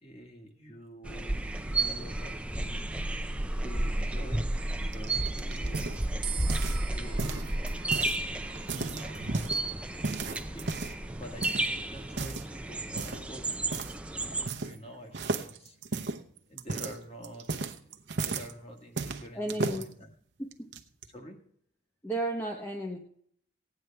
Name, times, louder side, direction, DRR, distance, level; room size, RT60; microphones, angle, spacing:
voice 1, 0.0-3.0 3.6-4.5 4.8-5.9 6.9-7.5 8.6-9.5 9.8-13.5 14.6-16.1 16.5-17.7 18.1-19.9 21.1-21.4, equal, 30° left, 2 dB, 1.7 m, -47 dB
sound 1, 1.0-14.5, right 2 dB, 5° right, 0.5 m, -32 dB
sound 2, 4.9-6.9 7.2-8.2 8.6-9.6 10.0-11.0 11.4-11.7 12.1-12.5 13.0-13.3 13.7-14.0 14.2-14.9 15.1-18.5 19.0-19.8 20.5-21.1, right 3 dB, 60° right, 0.8 m, -34 dB
sound 3, 6.2-12.6, right 8 dB, 25° right, 1.1 m, -47 dB
voice 2, 19.3-19.9 20.6-20.7 22.0-23.0, right 1 dB, 10° left, 1 dB, 0.9 m, -33 dB
16.5 x 9.4 x 3.4 m, 0.65 s
head